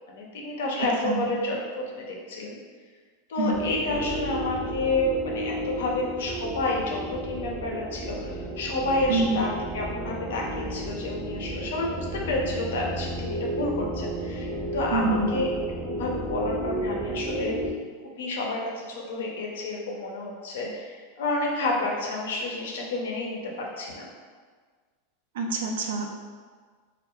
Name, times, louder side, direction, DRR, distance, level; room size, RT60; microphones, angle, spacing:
voice 1, 0.1-1.7 1.9-2.6 3.3-15.5 15.8-17.6 18.0-24.1, left 2 dB, 75° left, -1 dB, 0.5 m, -30 dB
voice 2, 0.8-1.2 3.4-3.5 9.1-9.4 14.9-15.3 25.3-26.1, right 3 dB, 75° right, 2 dB, 0.4 m, -26 dB
sound 1, 3.5-17.7, right 1 dB, 10° right, 0.6 m, -33 dB
2.2 x 2.0 x 2.9 m, 1.6 s
hypercardioid pair, 105°, 0 cm